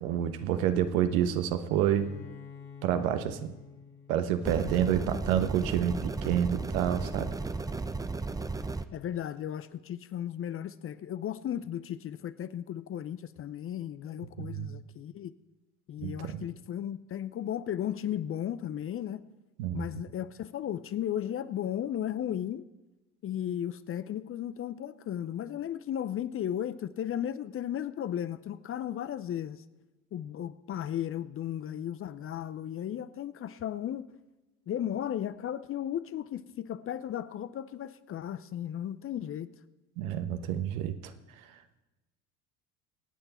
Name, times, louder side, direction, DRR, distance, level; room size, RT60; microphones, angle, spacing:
voice 1, 0.0-2.1 2.8-3.5 4.1-7.3 14.4-14.7 16.0-16.4 19.6-19.9 40.0-41.1, right 10 dB, 65° right, 1.3 m, -28 dB
Bowed string instrument, 1.8-5.5, left 6 dB, 60° left, 2.3 m, -49 dB
sound 1, 4.5-8.9, right 3 dB, 10° right, 0.6 m, -34 dB
voice 2, 5.1-5.4 8.9-15.3 15.9-19.3 19.7-22.7 23.2-29.6 30.1-34.1 34.7-39.5, left 10 dB, 30° left, 0.6 m, -35 dB
25.0 x 8.9 x 4.3 m
hypercardioid pair, 70°, 45 cm